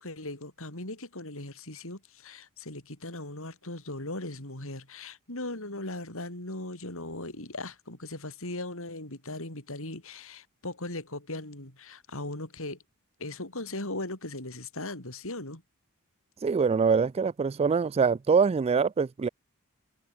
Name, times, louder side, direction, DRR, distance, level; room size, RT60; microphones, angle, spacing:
voice 1, 0.0-12.8 13.2-15.6, left 2 dB, 65° left, 6.8 m, -38 dB
voice 2, 16.4-19.3, right 5 dB, 30° right, 0.3 m, -24 dB
head